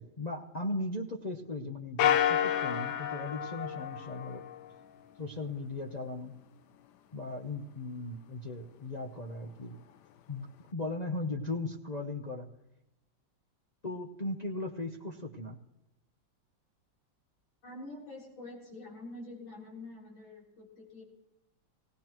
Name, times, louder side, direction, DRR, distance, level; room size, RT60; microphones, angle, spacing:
voice 1, 0.0-4.4 5.2-6.3 7.1-9.8 10.3-12.5 13.8-15.6, left 2 dB, 50° left, 1 dB, 0.5 m, -37 dB
sound 1, 2.0-4.7, left 10 dB, 70° left, 1.2 m, -30 dB
voice 2, 17.6-21.0, left 2 dB, 90° left, -3 dB, 4.6 m, -46 dB
18.0 x 18.0 x 3.0 m, 0.90 s
omnidirectional pair, 2.1 m